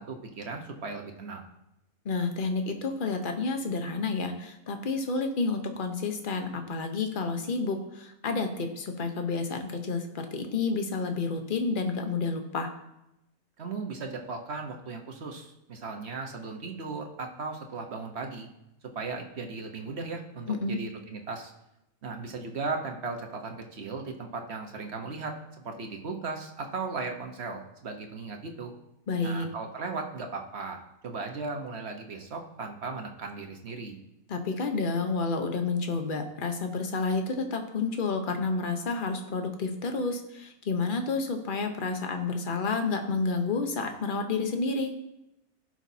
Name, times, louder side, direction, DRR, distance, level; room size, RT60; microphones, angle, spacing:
voice 1, 0.0-1.4 13.6-18.5 18.9-21.5 22.0-28.7 29.2-34.0, right 4 dB, 50° right, 3 dB, 1.3 m, -37 dB
voice 2, 2.0-12.7 20.5-20.8 29.1-29.5 34.3-44.9, left 4 dB, 40° left, 5 dB, 1.0 m, -30 dB
16.0 x 6.2 x 2.8 m, 0.88 s
omnidirectional pair, 1.5 m